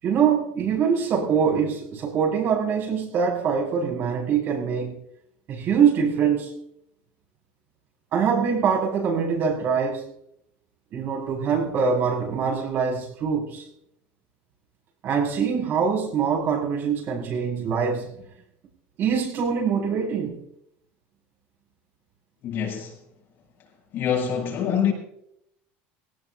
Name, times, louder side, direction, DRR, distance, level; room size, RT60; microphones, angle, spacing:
voice 1, 0.0-4.9 5.5-6.5 8.1-10.1 10.9-13.6 15.0-18.1 19.0-20.4, right 6 dB, 45° right, 6.5 m, -23 dB
voice 2, 22.4-23.0 23.9-24.9, left 8 dB, 50° left, 7.1 m, -25 dB
20.5 x 18.5 x 2.5 m
cardioid pair, 145°, 5 cm